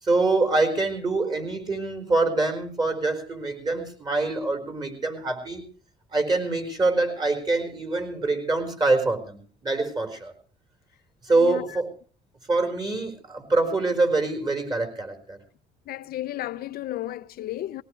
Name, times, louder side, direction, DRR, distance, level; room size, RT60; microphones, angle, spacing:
voice 1, 0.0-5.6 6.1-10.3 11.2-11.9 12.5-15.4, right 3 dB, 25° right, 4.6 m, -25 dB
voice 2, 15.9-17.8, left 14 dB, 65° left, 0.6 m, -33 dB
20.0 x 18.0 x 3.2 m
cardioid pair, 110°, 17 cm